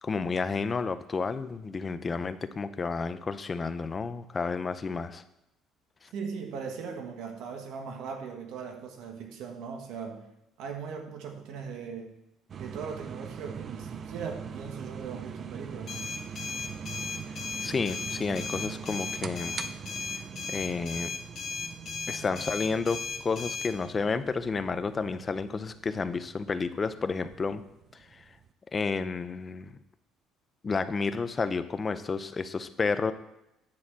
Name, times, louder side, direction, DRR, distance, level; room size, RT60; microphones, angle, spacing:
voice 1, 0.0-5.2 17.6-19.6 20.5-21.1 22.1-27.6 28.1-28.2 28.7-29.7 30.6-33.1, left 4 dB, 25° left, 12 dB, 0.5 m, -31 dB
voice 2, 6.1-10.3 10.6-12.1 12.6-16.1, right 6 dB, 70° right, 4 dB, 1.4 m, -39 dB
sound 1, 12.5-28.5, right 6 dB, 40° right, 0.5 m, -42 dB
sound 2, 15.9-23.7, left 5 dB, 40° left, 1.6 m, -36 dB
9.7 x 4.2 x 7.5 m, 0.87 s
cardioid pair, 135°, 0 cm